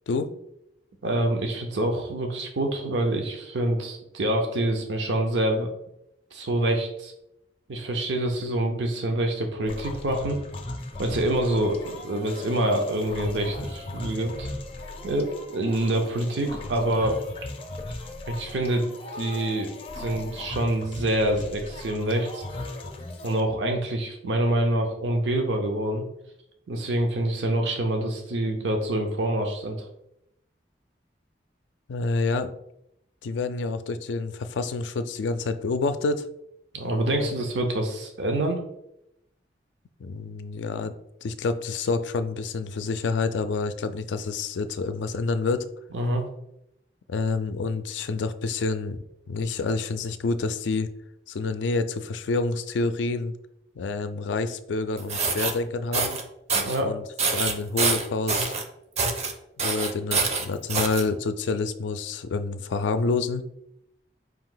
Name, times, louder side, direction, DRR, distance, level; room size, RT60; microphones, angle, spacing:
voice 1, 1.0-5.7 6.3-7.1 7.7-10.4 11.0-14.5 15.0-17.2 18.3-18.9 19.2-22.4 23.2-26.0 26.7-29.9 36.7-38.6 45.9-46.2 56.5-56.9, right 1 dB, 85° right, 3 dB, 0.6 m, -26 dB
sound 1, 9.7-23.4, left 2 dB, 30° left, 0.5 m, -38 dB
voice 2, 31.9-32.5 33.2-36.2 37.1-37.3 40.0-40.9 41.2-45.7 47.1-49.0 49.3-50.9 51.3-53.3 53.8-56.2 56.8-57.0 57.3-58.6 59.6-63.4, left 3 dB, 90° left, 11 dB, 0.4 m, -28 dB
sound 2, 55.0-55.5 55.9-56.2 56.5-56.8 57.2-58.6 59.0-59.3 59.6-61.0, right 4 dB, 35° right, 0.4 m, -25 dB
4.7 x 2.7 x 3.8 m, 0.82 s
head